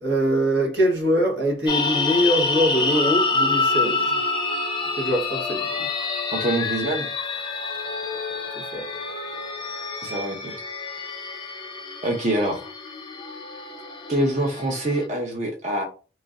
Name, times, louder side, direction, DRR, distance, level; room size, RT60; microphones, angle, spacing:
voice 1, 0.0-4.2 5.0-5.9 8.5-8.9, equal, 85° right, 1.2 m, -23 dB
ghostly voices, 1.7-15.1, left 3 dB, 25° left, 0.5 m, -27 dB
voice 2, 6.3-7.1 10.0-10.6 12.0-12.7 14.1-15.8, right 1 dB, 40° right, 0.7 m, -25 dB
3.1 x 2.5 x 3.6 m
head